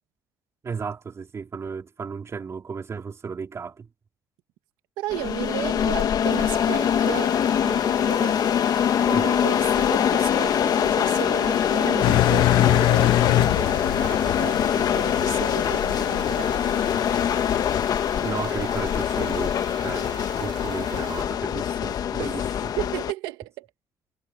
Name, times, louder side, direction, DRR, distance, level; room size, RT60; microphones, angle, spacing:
voice 1, 0.6-3.9 9.1-9.3 18.2-22.4, right 5 dB, 35° right, 3.8 m, -34 dB
voice 2, 5.0-8.4 9.0-16.9 22.2-23.7, right 16 dB, 90° right, 1.8 m, -34 dB
sound 1, 5.1-23.1, left 9 dB, 55° left, 1.5 m, -23 dB
sound 2, 6.2-21.2, right 13 dB, 75° right, 3.8 m, -43 dB
Engine, 12.0-17.8, left 16 dB, 80° left, 0.7 m, -25 dB
cardioid pair, 90°, 8 cm